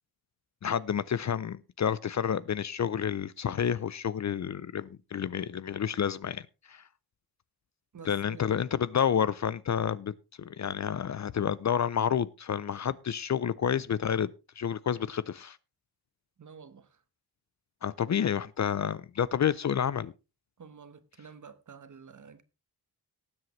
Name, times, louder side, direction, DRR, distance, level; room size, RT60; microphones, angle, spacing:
voice 1, 0.6-6.8 8.1-14.3 14.6-15.6 17.8-20.1, left 8 dB, 45° left, 0.5 m, -29 dB
voice 2, 7.9-8.5 16.4-17.0 20.6-22.4, right 6 dB, 45° right, 1.2 m, -50 dB
18.5 x 7.8 x 3.1 m
wide cardioid pair, 100°, 40 cm